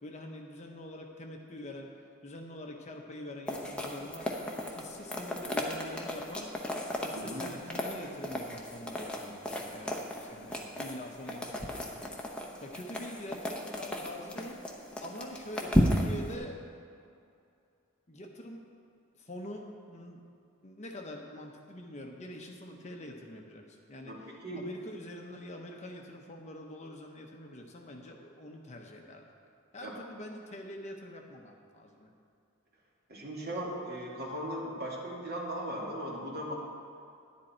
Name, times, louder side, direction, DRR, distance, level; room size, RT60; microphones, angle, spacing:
voice 1, 0.0-1.9 2.2-4.3 4.6-6.5 6.9-12.2 12.6-14.6 15.0-16.6 18.1-18.7 19.2-20.2 20.6-29.3 29.7-32.1, left 1 dB, 35° left, 2 dB, 0.8 m, -45 dB
sound 1, 3.5-16.4, equal, 5° left, 0.8 m, -35 dB
voice 2, 7.1-7.4 24.0-24.6 29.8-29.9 33.1-36.5, equal, 50° right, -4 dB, 2.3 m, -38 dB
10.5 x 10.5 x 4.4 m, 2.5 s
head